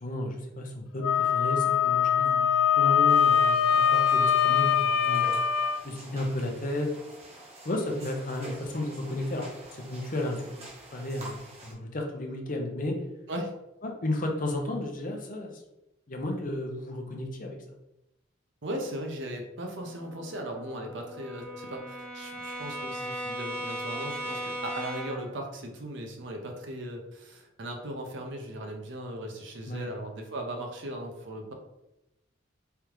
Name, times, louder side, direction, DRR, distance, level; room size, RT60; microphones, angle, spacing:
voice 1, 0.0-5.4 5.8-6.9 7.6-10.4 10.9-13.0 13.8-15.6 16.1-17.6 29.7-29.9, left 1 dB, 40° left, 1 dB, 0.7 m, -33 dB
Wind instrument woodwind instrument, 1.0-5.8, left 8 dB, 85° left, 0.3 m, -23 dB
sound 1, 3.1-11.7, right 1 dB, 30° right, 0.9 m, -47 dB
voice 2, 18.6-31.5, right 1 dB, 60° right, 2 dB, 0.7 m, -38 dB
Brass instrument, 19.8-25.3, equal, 5° left, 0.4 m, -38 dB
3.6 x 3.4 x 3.1 m, 0.89 s
head